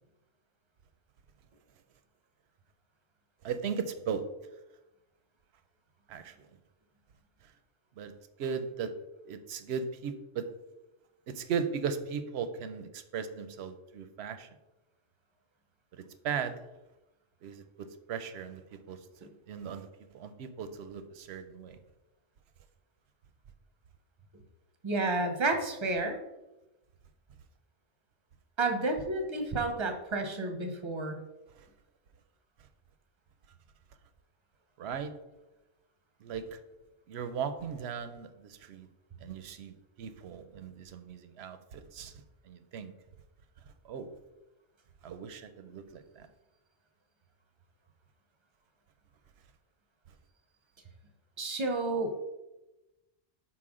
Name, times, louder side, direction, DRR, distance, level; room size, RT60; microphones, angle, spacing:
voice 1, 3.4-4.3 6.1-6.3 8.0-8.9 9.2-10.5 11.3-14.5 15.9-16.6 17.4-19.9 20.1-21.8 31.6-31.7 34.8-35.1 36.2-36.6 37.1-38.9 39.2-42.1 42.4-42.9 43.8-44.2 45.0-46.3, right 6 dB, 65° right, 10 dB, 0.8 m, -37 dB
voice 2, 24.8-26.2 28.6-31.2 51.4-52.2, right 2 dB, 30° right, 5 dB, 0.7 m, -31 dB
6.2 x 4.4 x 3.7 m, 0.99 s
omnidirectional pair, 1.3 m